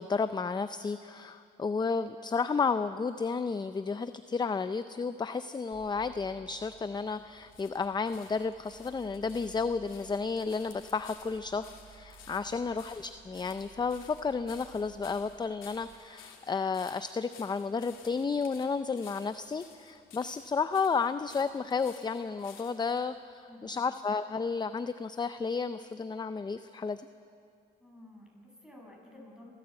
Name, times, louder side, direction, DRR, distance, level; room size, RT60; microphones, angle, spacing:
voice 1, 0.0-27.0, left 5 dB, 20° left, 11 dB, 0.5 m, -32 dB
sound 1, 5.7-16.0, right 5 dB, 45° right, 1.6 m, -58 dB
sound 2, 6.5-23.0 23.8-23.9, left 7 dB, 85° left, 2.8 m, -55 dB
voice 2, 23.5-23.9 27.8-29.5, left 1 dB, 5° right, -1 dB, 6.6 m, -53 dB
28.5 x 14.0 x 7.7 m, 2.5 s
cardioid pair, 90°, 20 cm